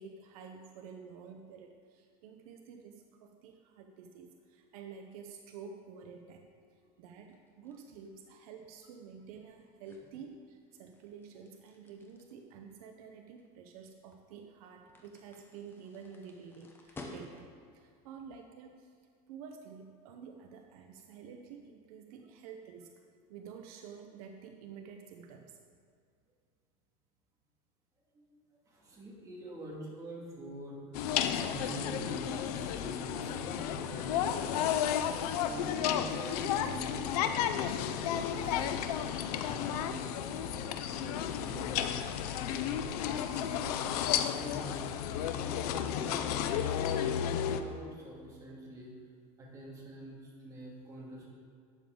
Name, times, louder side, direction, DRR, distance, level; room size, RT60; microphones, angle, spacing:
voice 1, 0.0-6.4 6.7-17.5 17.7-18.9 19.3-22.9 23.3-25.6, right 6 dB, 70° right, 4 dB, 0.9 m, -50 dB
sound 1, 7.3-17.7, left 2 dB, 10° left, 0.9 m, -54 dB
voice 2, 28.1-34.7 35.4-37.3 37.5-38.8 39.5-41.9 42.4-42.9 43.2-43.9 44.2-45.0 45.4-47.0 47.4-48.9 49.4-51.2, right 1 dB, 15° right, -4 dB, 2.2 m, -46 dB
sound 2, 30.9-47.6, left 9 dB, 85° left, 0.6 m, -33 dB
12.0 x 8.6 x 3.8 m, 2.2 s
supercardioid pair, 165°, 19 cm